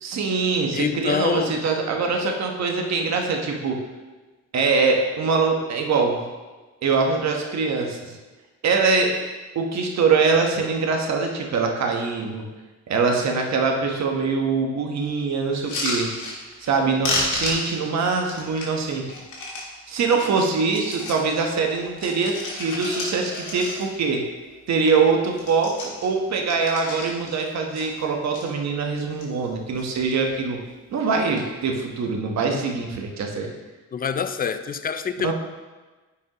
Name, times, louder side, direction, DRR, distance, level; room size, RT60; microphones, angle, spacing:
voice 1, 0.0-3.8 4.5-6.2 6.8-8.2 8.6-9.1 9.5-12.4 12.9-16.1 16.6-19.1 19.9-24.2 24.7-30.6 30.9-33.5 35.2-35.3, right 4 dB, 60° right, 2 dB, 1.2 m, -23 dB
voice 2, 0.7-1.6 32.5-32.6 33.9-35.3, left 6 dB, 30° left, 11 dB, 0.4 m, -26 dB
sound 1, 15.5-16.8 17.0-19.7 20.1-21.3 21.6-24.1 24.5-24.6 24.8-25.1 25.3-27.4 27.7-28.4 29.0-29.5 29.7-30.3 31.1-31.4, left 2 dB, 75° left, 2.0 m, -31 dB
9.5 x 5.3 x 3.0 m, 1.3 s
cardioid pair, 90°, 30 cm